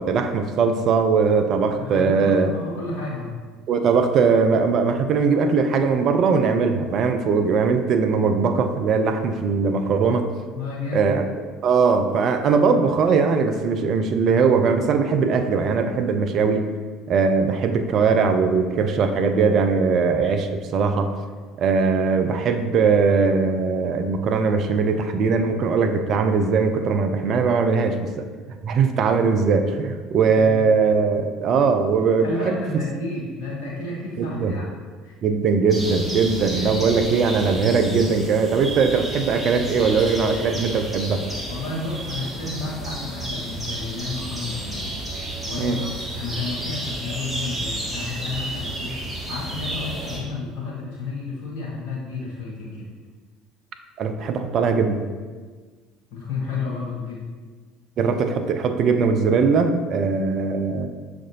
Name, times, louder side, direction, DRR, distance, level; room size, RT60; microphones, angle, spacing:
voice 1, 0.0-2.5 3.7-10.3 10.9-11.3 11.6-16.7 17.1-21.1 21.6-28.3 28.6-32.6 34.2-34.6 35.2-41.2 45.6-45.8 54.0-55.0 58.0-60.9, right 5 dB, 50° right, 8 dB, 0.4 m, -20 dB
voice 2, 1.8-3.4 10.5-11.1 30.3-30.6 32.2-34.7 35.0-35.1 36.6-37.2 41.5-44.9 45.4-45.9 46.2-49.0 49.3-52.9 56.1-57.2, left 3 dB, 70° left, -5 dB, 0.7 m, -31 dB
sound 1, 35.7-50.2, right 1 dB, 5° right, 1.5 m, -31 dB
5.9 x 2.5 x 2.7 m, 1.5 s
figure-of-eight pair, 60°, 0 cm